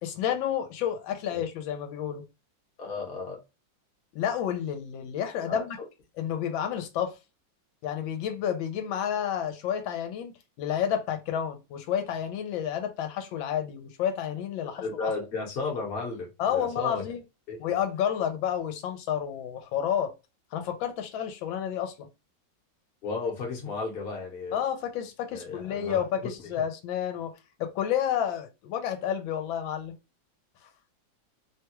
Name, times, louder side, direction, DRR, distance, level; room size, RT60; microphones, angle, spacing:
voice 1, 0.0-2.3 4.1-5.8 6.2-7.2 7.8-10.3 10.6-15.1 16.4-17.2 17.6-20.1 20.5-22.1 24.5-27.3 27.6-30.0 30.6-30.7, left 9 dB, 80° left, 1.3 m, -30 dB
voice 2, 2.8-3.4 5.5-5.9 14.7-17.0 17.5-17.6 23.0-24.6 25.3-26.0, left 4 dB, 45° left, 0.9 m, -34 dB
3.2 x 2.3 x 2.9 m
omnidirectional pair, 2.1 m